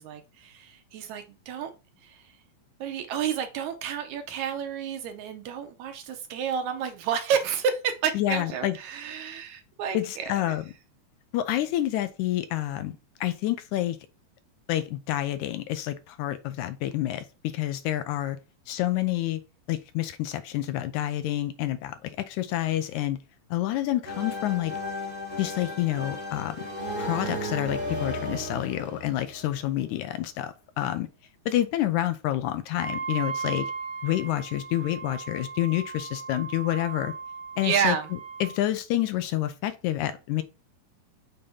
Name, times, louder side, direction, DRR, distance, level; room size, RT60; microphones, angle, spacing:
voice 1, 0.0-1.7 2.0-2.2 2.8-10.3 37.6-38.1, right 7 dB, 80° right, 1.9 m, -30 dB
voice 2, 8.1-8.8 9.9-10.7 11.3-14.0 14.7-18.4 18.7-19.4 19.7-23.2 23.5-24.7 25.4-26.6 27.0-31.1 31.5-33.7 34.0-37.1 37.6-38.0 38.4-40.4, left 14 dB, 80° left, 1.9 m, -28 dB
sound 1, 24.0-29.8, left 1 dB, 20° right, 1.4 m, -34 dB
Wind instrument woodwind instrument, 32.7-38.6, right 5 dB, 50° left, 0.7 m, -37 dB
6.8 x 2.6 x 5.4 m
omnidirectional pair, 3.6 m